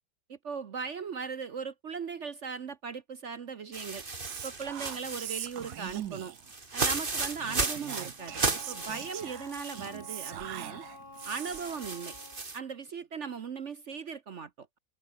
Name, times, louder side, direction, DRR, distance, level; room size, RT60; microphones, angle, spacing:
voice 1, 0.3-4.0 4.4-6.3 6.7-10.9 11.2-12.1 12.5-14.8, right 6 dB, 50° right, 1.0 m, -38 dB
sound 1, 3.7-10.0 10.3-10.4 11.2-12.6, right 3 dB, 30° right, 2.2 m, -35 dB
Whispering, 4.2-6.5 7.4-11.8, right 12 dB, 70° right, 1.3 m, -42 dB
Wind instrument woodwind instrument, 8.2-12.5, left 3 dB, 30° left, 2.6 m, -50 dB
open air
omnidirectional pair, 1.9 m